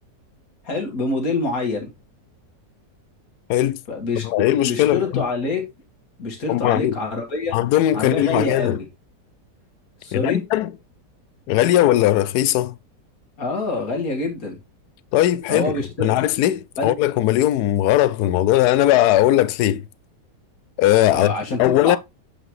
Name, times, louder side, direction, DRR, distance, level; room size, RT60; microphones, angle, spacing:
voice 1, 0.6-1.9 3.9-5.6 6.2-7.6 7.9-8.8 10.0-10.4 13.4-14.6 15.5-16.2 16.8-16.9 21.1-22.0, left 3 dB, 55° left, 2.2 m, -26 dB
voice 2, 4.2-5.2 6.5-7.0 7.5-8.8 10.1-10.7 11.5-12.7 15.1-15.7 16.0-19.8 20.8-21.3 21.6-22.0, left 13 dB, 75° left, 1.0 m, -19 dB
7.6 x 4.9 x 3.0 m
omnidirectional pair, 1.9 m